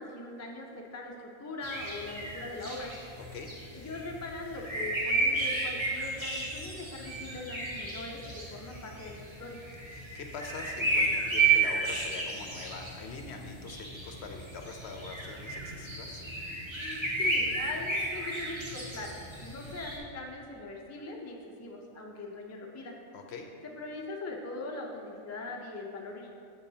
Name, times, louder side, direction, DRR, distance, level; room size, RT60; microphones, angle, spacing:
voice 1, 0.0-2.9 3.7-9.7 16.7-23.0 23.6-26.3, left 2 dB, 20° left, -1 dB, 0.5 m, -41 dB
sound 1, 1.6-20.0, right 3 dB, 25° right, 1.1 m, -33 dB
voice 2, 9.9-16.2 23.1-23.5, left 4 dB, 65° left, 3 dB, 0.8 m, -43 dB
8.4 x 7.1 x 2.8 m, 2.5 s
omnidirectional pair, 1.3 m